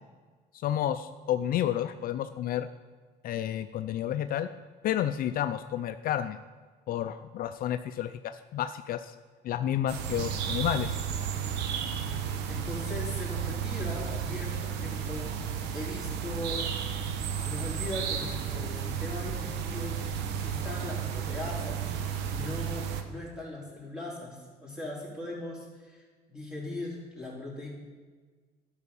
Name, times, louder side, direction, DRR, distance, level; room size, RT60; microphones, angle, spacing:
voice 1, 0.6-2.7 3.2-4.5 4.8-6.4 6.9-9.1 9.4-11.0, left 11 dB, 60° left, 10 dB, 0.4 m, -30 dB
sound 1, 9.9-23.0, right 7 dB, 85° right, 0.9 m, -33 dB
voice 2, 12.5-15.2 15.7-16.7 17.4-20.0 20.4-21.9 22.3-26.0 26.3-27.7, left 1 dB, 5° right, -5 dB, 3.6 m, -39 dB
11.5 x 4.9 x 7.0 m, 1.5 s
cardioid pair, 110°, 17 cm